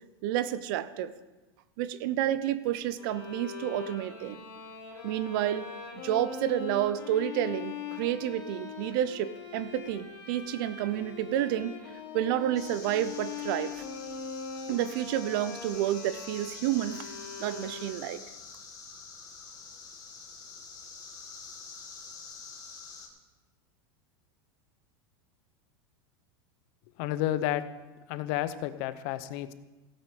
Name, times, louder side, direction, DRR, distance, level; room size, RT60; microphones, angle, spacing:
voice 1, 0.2-1.1 1.8-4.4 5.0-5.7 5.9-11.8 12.1-13.8 14.7-17.1 17.4-18.2, right 12 dB, 60° right, 15 dB, 0.7 m, -30 dB
Bowed string instrument, 3.0-18.3, left 6 dB, 85° left, 3.9 m, -42 dB
sound 1, 12.6-23.1, left 5 dB, 30° left, 2.3 m, -46 dB
voice 2, 27.0-27.6 28.1-29.5, left 13 dB, 55° left, 13 dB, 0.8 m, -31 dB
16.0 x 8.6 x 5.0 m, 1.1 s
supercardioid pair, 140°, 13 cm